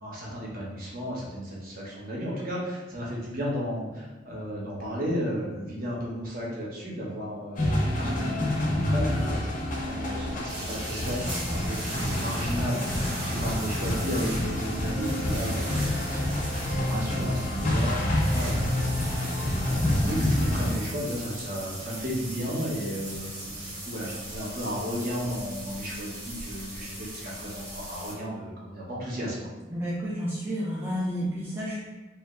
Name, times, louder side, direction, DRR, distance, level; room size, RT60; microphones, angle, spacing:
voice 1, 0.0-16.4 16.7-29.5, equal, 50° right, -4 dB, 0.7 m, -34 dB
sound 1, 7.6-20.8, left 1 dB, 45° left, 0.5 m, -28 dB
sound 2, 10.5-28.1, right 1 dB, 85° right, 0.9 m, -39 dB
voice 2, 29.7-31.8, equal, 10° right, -7 dB, 0.3 m, -30 dB
2.7 x 2.2 x 2.3 m, 1.1 s
head